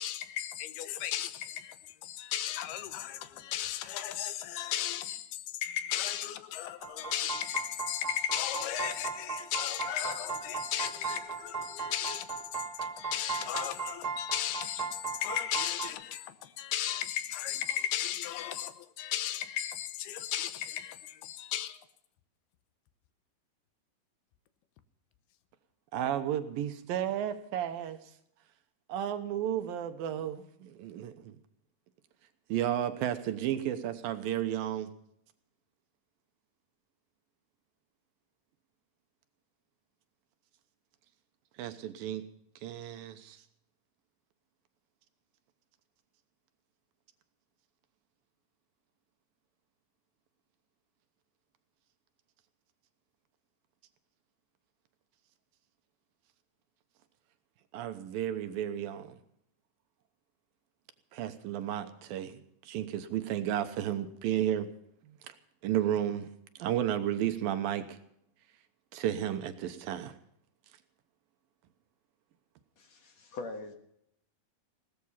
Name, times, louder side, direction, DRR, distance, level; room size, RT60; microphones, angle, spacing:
voice 1, 0.0-21.8, left 11 dB, 85° left, 2.9 m, -35 dB
sound 1, 6.8-15.9, right 5 dB, 30° right, 2.5 m, -37 dB
voice 2, 25.9-28.0 28.9-31.4 32.5-34.9 41.6-42.2 42.6-43.4 57.7-59.2 61.1-64.7 65.0-65.3 65.6-66.3 66.6-68.0 68.9-70.1, right 11 dB, 75° right, 2.6 m, -33 dB
voice 3, 72.8-73.7, left 3 dB, 55° left, 2.3 m, -42 dB
17.5 x 13.5 x 5.6 m
omnidirectional pair, 4.4 m